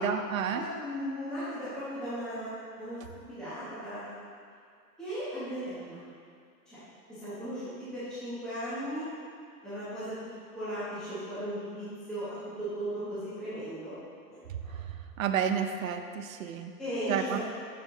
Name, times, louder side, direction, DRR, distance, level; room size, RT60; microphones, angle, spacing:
voice 1, 0.0-0.7 15.2-16.7 17.1-17.4, right 7 dB, 55° right, 7 dB, 0.6 m, -30 dB
voice 2, 0.5-3.0 3.3-4.1 5.0-6.0 6.7-6.8 7.1-9.1 9.6-14.0 14.3-14.8 16.8-17.4, equal, ahead, -14 dB, 1.1 m, -37 dB
6.8 x 6.5 x 3.9 m, 2.2 s
hypercardioid pair, 155°, 49 cm